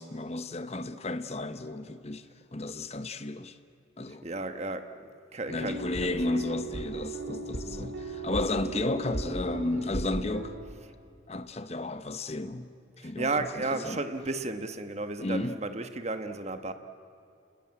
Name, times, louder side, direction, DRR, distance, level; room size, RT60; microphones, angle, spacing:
voice 1, 0.0-2.3 2.5-3.6 4.0-4.2 5.5-10.5 11.3-12.8 13.0-14.0 15.2-15.6, left 2 dB, 30° left, 0.9 m, -33 dB
voice 2, 4.2-4.9 5.3-6.4 13.0-16.7, right 2 dB, 35° right, 1.1 m, -33 dB
sound 1, 5.5-10.7, right 2 dB, 85° right, 2.2 m, -37 dB
28.5 x 20.0 x 8.8 m
head